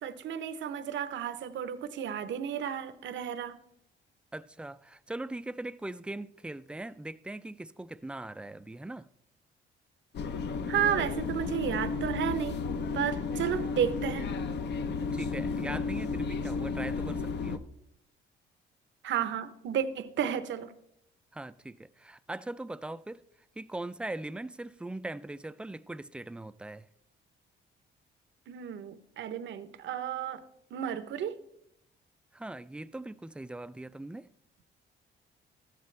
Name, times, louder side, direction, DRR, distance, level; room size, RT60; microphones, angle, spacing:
voice 1, 0.0-3.6 10.7-12.6 12.9-14.3 19.0-20.7 28.5-30.4 30.7-31.4, right 9 dB, 70° right, 0.8 m, -32 dB
voice 2, 4.3-9.1 15.1-17.6 21.3-23.2 23.6-26.9 32.3-34.3, right 2 dB, 5° right, 0.3 m, -40 dB
sound 1, 10.1-17.6, left 4 dB, 60° left, 0.7 m, -33 dB
13.5 x 9.1 x 3.2 m
cardioid pair, 90°, 20 cm